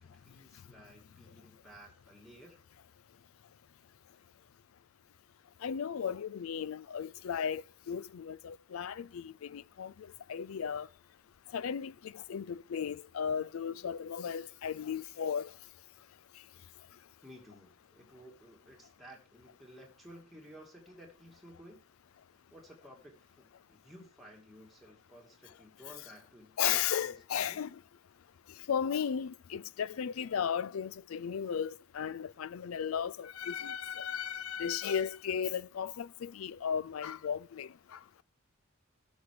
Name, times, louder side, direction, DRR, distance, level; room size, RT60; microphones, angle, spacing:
voice 1, 0.0-2.6 17.2-21.8 22.3-27.6, equal, ahead, 2.4 m, -55 dB
voice 2, 5.6-10.9 11.5-15.5 26.6-27.8 28.7-38.0, left 8 dB, 85° left, 0.4 m, -35 dB
14.0 x 6.3 x 4.8 m
head